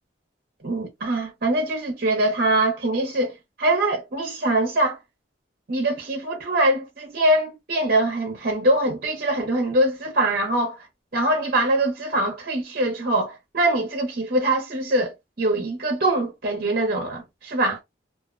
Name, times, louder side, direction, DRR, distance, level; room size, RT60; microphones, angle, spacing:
voice 1, 0.6-5.0 5.7-10.9 11.1-17.8, right 1 dB, 50° right, 0.7 m, -23 dB
2.4 x 2.1 x 2.4 m
head